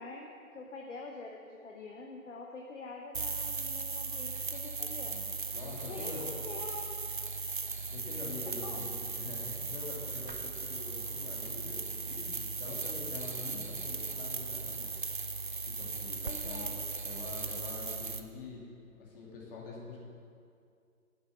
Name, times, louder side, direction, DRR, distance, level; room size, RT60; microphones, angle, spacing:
voice 1, 0.0-5.3 5.9-6.9 8.6-8.9 16.2-16.8, left 3 dB, 55° left, 1 dB, 1.1 m, -45 dB
sound 1, 3.1-18.2, right 4 dB, 40° right, 0.4 m, -37 dB
voice 2, 5.5-6.3 7.9-14.9 15.6-16.7 17.0-18.6 18.9-20.0, left 4 dB, 40° left, -4 dB, 2.5 m, -45 dB
9.4 x 7.1 x 6.8 m, 2.4 s
figure-of-eight pair, 140°, 43 cm